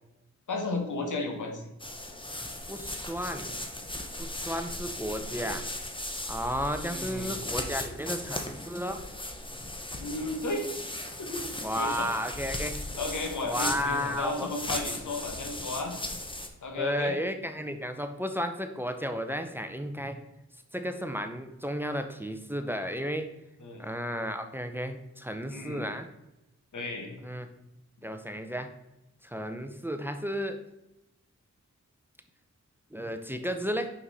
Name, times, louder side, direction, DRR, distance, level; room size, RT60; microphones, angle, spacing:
voice 1, 0.5-1.6 6.9-7.3 10.0-10.9 11.2-12.1 12.9-16.0 16.6-17.1 23.6-23.8 25.5-25.8 26.7-27.1, left 2 dB, 85° left, 3 dB, 1.3 m, -34 dB
sound 1, 1.8-16.5, left 1 dB, 15° left, 1.0 m, -37 dB
voice 2, 2.7-3.5 4.2-5.6 6.3-9.0 11.6-12.8 13.5-14.5 16.8-20.2 20.7-23.3 23.8-26.1 27.2-27.5 28.0-28.7 29.2-30.6 32.9-33.9, equal, 5° right, 7 dB, 0.7 m, -33 dB
5.6 x 5.5 x 4.1 m, 0.92 s
cardioid pair, 55°, 30 cm